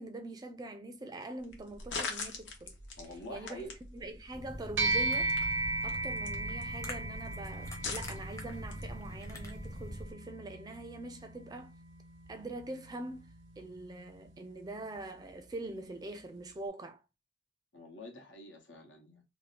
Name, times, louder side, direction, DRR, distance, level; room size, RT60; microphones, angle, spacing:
voice 1, 0.0-2.7 3.3-5.4 5.8-11.7 12.3-13.3 13.6-17.0, right 2 dB, 20° right, 0.4 m, -43 dB
sound 1, 1.4-10.1, left 3 dB, 70° left, 0.8 m, -45 dB
voice 2, 3.0-3.7 17.7-19.2, equal, 85° left, 1.1 m, -46 dB
sound 2, 4.3-10.0, equal, 15° left, 0.6 m, -44 dB
sound 3, 4.8-14.4, right 3 dB, 75° right, 0.5 m, -37 dB
2.8 x 2.0 x 4.0 m
head